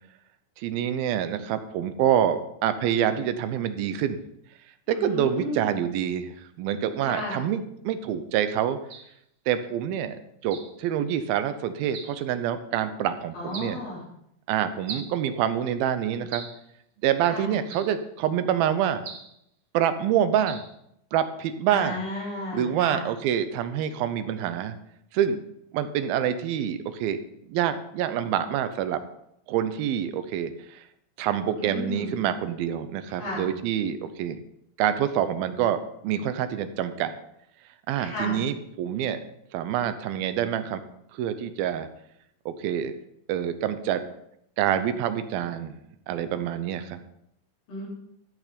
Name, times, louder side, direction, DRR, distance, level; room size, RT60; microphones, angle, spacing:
voice 1, 0.6-4.2 4.9-8.8 9.5-13.8 14.5-16.5 17.0-19.0 19.7-20.6 21.1-22.0 22.5-24.8 25.1-25.4 25.7-27.2 27.5-29.0 29.5-30.8 31.2-34.4 34.8-37.1 37.9-39.2 39.5-40.8 41.1-41.9 42.5-42.9 43.3-44.1 44.6-45.8 46.1-47.0, right 10 dB, 85° right, 11 dB, 2.7 m, -26 dB
voice 2, 4.9-5.8 7.0-7.4 13.3-14.0 17.3-17.6 21.7-23.0 31.6-32.1 33.2-33.5 38.0-38.4 47.7-47.9, left 1 dB, 70° left, -6 dB, 5.5 m, -33 dB
sound 1, 8.9-9.1 10.5-10.8 11.9-12.2 13.5-13.8 14.9-15.2 16.3-16.6 17.7-18.0 19.0-19.4 20.5-20.7, right 5 dB, 65° right, 1.2 m, -40 dB
14.0 x 6.5 x 5.1 m, 0.75 s
omnidirectional pair, 4.2 m